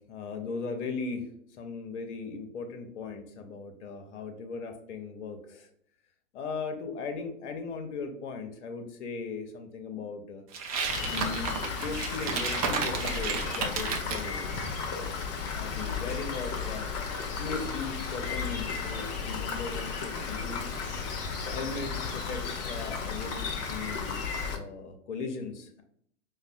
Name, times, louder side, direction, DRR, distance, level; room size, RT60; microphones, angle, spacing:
voice 1, 0.1-5.7 6.3-10.4 11.0-14.4 15.5-16.9 17.4-20.7 21.5-25.8, left 4 dB, 55° left, 6 dB, 0.8 m, -38 dB
sound 1, 10.5-14.3, right 5 dB, 30° right, 0.4 m, -32 dB
Rain, 10.9-24.6, left 5 dB, 30° left, 0.5 m, -34 dB
5.1 x 2.1 x 2.5 m, 0.66 s
figure-of-eight pair, 105°, 41 cm